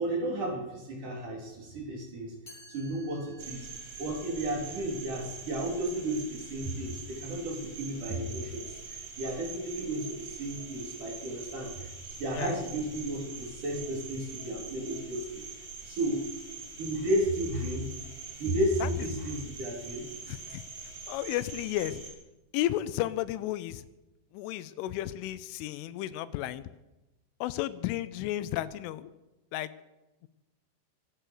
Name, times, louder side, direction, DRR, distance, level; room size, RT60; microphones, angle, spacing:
voice 1, 0.0-2.3 2.7-3.7 4.0-15.4 15.9-16.2 16.8-17.9 18.4-20.1, right 1 dB, 45° right, 0 dB, 4.5 m, -33 dB
Chime, 2.5-8.3, equal, 20° left, 8.0 m, -58 dB
Cricket, 3.4-22.1, right 5 dB, 65° right, 6.6 m, -44 dB
voice 2, 20.3-20.6 21.1-22.0 22.5-23.9 24.3-26.7 27.4-29.1 29.5-29.7, left 14 dB, 85° left, 15 dB, 3.2 m, -33 dB
23.5 x 9.2 x 6.5 m, 1.0 s
omnidirectional pair, 5.6 m